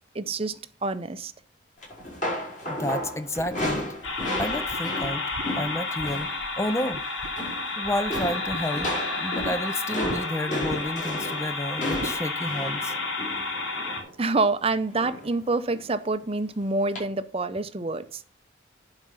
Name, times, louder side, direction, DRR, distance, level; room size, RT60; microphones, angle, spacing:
voice 1, 0.1-1.3 14.2-18.2, right 3 dB, 30° right, 0.6 m, -27 dB
sound 1, 1.8-6.4 6.6-6.9 7.2-7.7 8.1-14.1 15.0-15.4 15.7-15.9 16.9-17.0, left 1 dB, 40° left, 6.3 m, -34 dB
voice 2, 2.7-3.8 4.4-5.2 5.6-6.3 6.6-7.0 7.8-12.9, left 1 dB, 15° left, 0.5 m, -30 dB
sound 2, 3.4-6.6 6.9-7.5 7.8-9.5 10.0-10.2 10.6-11.1 11.9-12.2, right 2 dB, 65° right, 0.8 m, -39 dB
sound 3, 4.0-14.0, left 3 dB, 80° left, 2.8 m, -31 dB
11.0 x 5.0 x 5.5 m
head